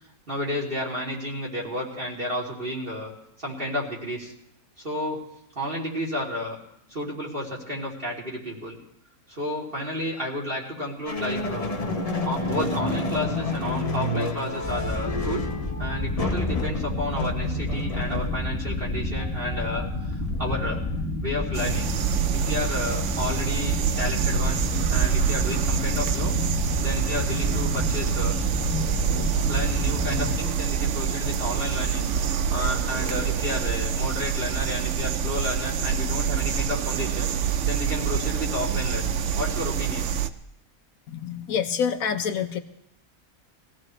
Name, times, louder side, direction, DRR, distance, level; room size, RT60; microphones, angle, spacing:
voice 1, 0.3-3.1 3.4-4.3 4.8-5.2 5.6-6.6 6.9-8.8 9.3-11.8 12.2-15.5 15.8-20.8 21.2-21.9 22.3-24.6 24.9-26.3 26.8-28.4 29.5-32.1 32.5-37.3 37.7-40.1, left 1 dB, 35° right, -4 dB, 3.5 m, -31 dB
sound 1, 11.1-21.2, left 2 dB, 30° left, 1.0 m, -30 dB
sound 2, 14.6-30.4, left 2 dB, 10° left, 2.2 m, -30 dB
sound 3, 21.5-40.3, right 8 dB, 60° right, 1.0 m, -26 dB
voice 2, 41.1-42.6, left 7 dB, 70° left, 8 dB, 1.4 m, -27 dB
22.5 x 16.0 x 3.2 m, 0.77 s
omnidirectional pair, 1.5 m